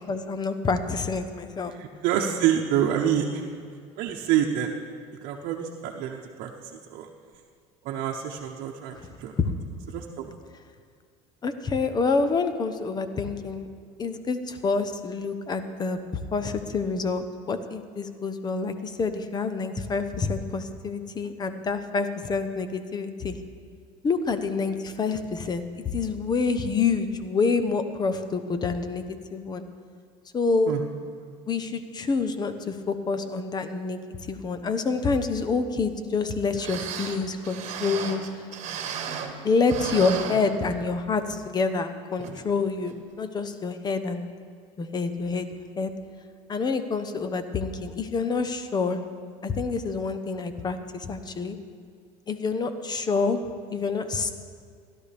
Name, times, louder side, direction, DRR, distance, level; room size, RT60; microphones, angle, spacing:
voice 1, 0.1-1.7 9.4-9.5 11.4-13.7 14.0-16.0 16.3-23.4 24.0-29.1 29.3-29.6 30.3-30.7 31.5-38.2 39.4-44.3 44.8-45.5 45.8-45.9 46.5-49.0 49.4-51.6 52.3-53.4 53.7-54.3, left 4 dB, 25° left, 10 dB, 0.9 m, -27 dB
voice 2, 2.0-3.4 4.0-4.7 5.2-6.5 6.9-7.1 7.9-9.3 9.9-10.3 30.7-30.8, right 10 dB, 65° right, 0 dB, 0.9 m, -27 dB
sound 1, 36.3-36.4 36.6-39.4 39.7-41.0 41.4-41.5 42.2-42.4 42.9-43.0, right 7 dB, 50° right, 1.3 m, -35 dB
16.5 x 11.5 x 3.5 m, 2.2 s
supercardioid pair, 115°, 15 cm